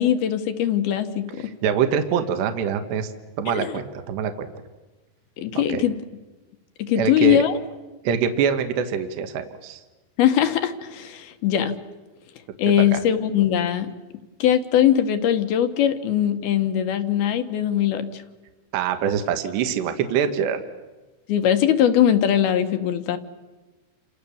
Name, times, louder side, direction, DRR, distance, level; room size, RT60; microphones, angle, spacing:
voice 1, 0.0-1.5 3.5-3.8 5.4-6.0 6.8-7.5 10.2-11.8 12.6-13.9 14.4-18.2 21.3-23.2, left 10 dB, 65° left, 8 dB, 2.8 m, -21 dB
voice 2, 1.6-3.1 3.4-4.5 5.6-5.8 7.0-7.4 8.1-9.8 12.9-13.0 18.7-20.6, right 8 dB, 70° right, 7 dB, 3.5 m, -24 dB
29.0 x 27.5 x 7.2 m, 1.2 s
omnidirectional pair, 5.4 m